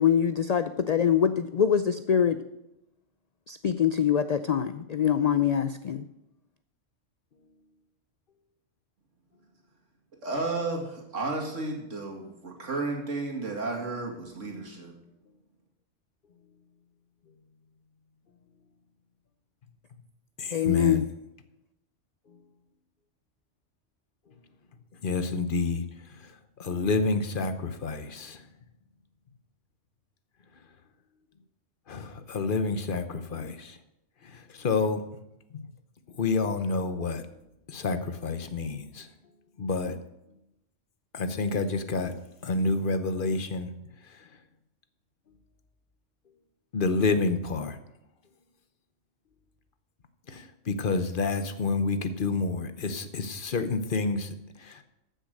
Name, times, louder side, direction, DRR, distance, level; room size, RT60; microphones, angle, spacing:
voice 1, 0.0-2.4 3.5-6.0 20.5-21.0, left 8 dB, 70° left, 11 dB, 0.3 m, -24 dB
voice 2, 10.2-14.9, right 3 dB, 80° right, 0 dB, 2.6 m, -33 dB
voice 3, 20.4-21.0 22.3-22.4 25.0-28.4 31.9-33.8 34.2-35.0 35.5-35.7 36.1-37.2 37.7-39.1 39.6-40.0 41.1-42.1 42.4-43.7 44.0-44.3 46.7-47.8 50.3-54.8, left 3 dB, 45° left, 10 dB, 1.0 m, -29 dB
14.0 x 6.5 x 6.5 m, 0.89 s
omnidirectional pair, 1.3 m